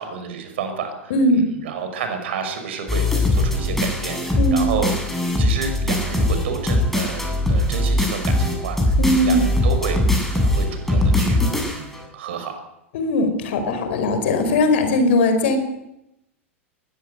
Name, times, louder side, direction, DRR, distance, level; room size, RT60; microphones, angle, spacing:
voice 1, 0.0-4.9 5.4-7.2 7.5-11.4 11.7-12.5, right 6 dB, 55° right, 7 dB, 6.0 m, -30 dB
voice 2, 1.1-1.5 4.4-4.6 9.0-9.5 12.9-15.6, left 1 dB, 55° left, 8 dB, 5.2 m, -19 dB
sound 1, 2.9-12.0, left 1 dB, ahead, 7.9 m, -21 dB
21.0 x 17.5 x 9.6 m, 0.85 s
figure-of-eight pair, 90°, 7 cm